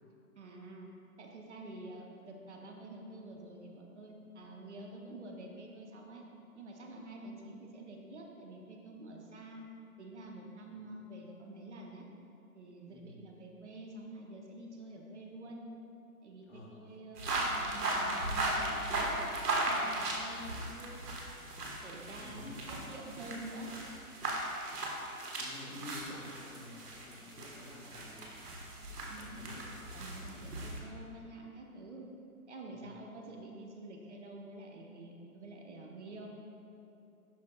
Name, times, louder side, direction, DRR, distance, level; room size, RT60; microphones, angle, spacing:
voice 1, 0.4-0.9 1.2-6.2 6.5-9.7 10.0-12.0 12.5-15.7 16.2-19.2 19.6-21.0 21.8-23.7 29.1-29.4 29.9-32.0 32.5-36.3, right 1 dB, 50° right, 0 dB, 0.8 m, -48 dB
voice 2, 12.8-13.2 16.4-16.8 22.2-22.6 25.4-28.3 29.0-30.1 30.5-30.6 32.7-32.9, left 1 dB, 40° left, -3 dB, 1.2 m, -50 dB
sound 1, 17.2-30.8, right 2 dB, 85° right, 1.5 m, -37 dB
11.5 x 5.0 x 2.3 m, 2.8 s
hypercardioid pair, 165°, 45 cm